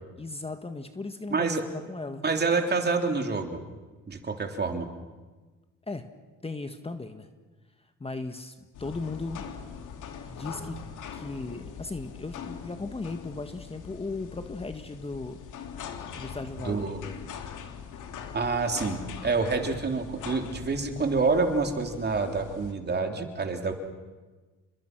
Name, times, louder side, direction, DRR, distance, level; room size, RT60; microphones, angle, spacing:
voice 1, 0.2-2.2 5.9-6.1 6.4-7.3 8.0-9.5 10.3-10.8 11.1-15.4 16.2-16.9, left 3 dB, 20° left, 7 dB, 1.6 m, -37 dB
voice 2, 1.3-1.6 2.2-3.6 4.1-4.9 16.6-17.0 18.3-23.7, right 4 dB, 35° right, 4 dB, 3.3 m, -27 dB
sound 1, 8.7-22.7, left 7 dB, 75° left, 2.9 m, -42 dB
29.5 x 22.0 x 6.1 m, 1.3 s
cardioid pair, 90°, 31 cm